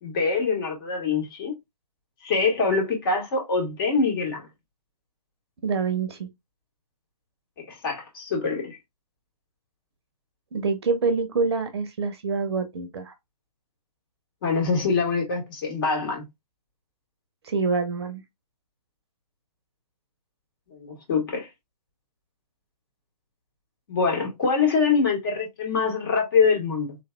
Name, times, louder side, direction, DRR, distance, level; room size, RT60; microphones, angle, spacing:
voice 1, 0.0-1.5 2.2-4.5 7.6-8.8 14.4-16.3 20.7-21.5 23.9-27.0, left 4 dB, 35° left, 1.9 m, -24 dB
voice 2, 5.6-6.3 10.5-13.1 17.4-18.2, right 4 dB, 40° right, 0.8 m, -26 dB
3.8 x 3.2 x 2.3 m
figure-of-eight pair, 130°, 20 cm